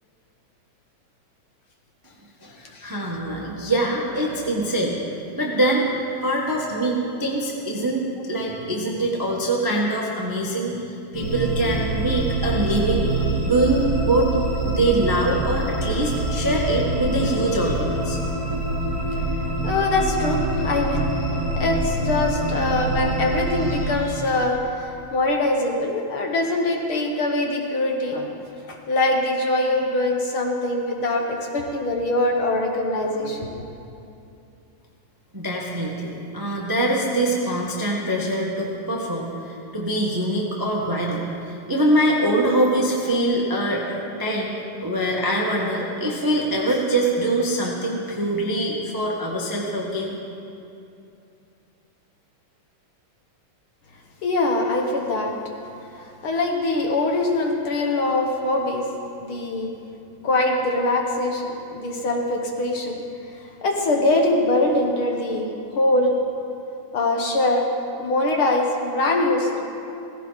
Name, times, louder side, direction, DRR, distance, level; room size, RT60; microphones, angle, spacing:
voice 1, 2.8-5.0 5.4-5.9 6.2-14.3 14.6-18.2 35.3-43.9 44.2-44.6 44.8-50.2, right 1 dB, 25° right, -2 dB, 0.4 m, -23 dB
sound 1, 11.1-23.9, right 1 dB, 90° left, 5.2 m, -25 dB
voice 2, 19.6-21.1 21.6-28.3 28.7-33.5 54.2-55.3 56.2-58.9 59.2-59.7 60.2-63.0 63.6-66.2 66.9-67.7 68.0-69.7, left 2 dB, 55° left, 1 dB, 1.8 m, -23 dB
17.5 x 16.0 x 4.1 m, 2.7 s
omnidirectional pair, 3.3 m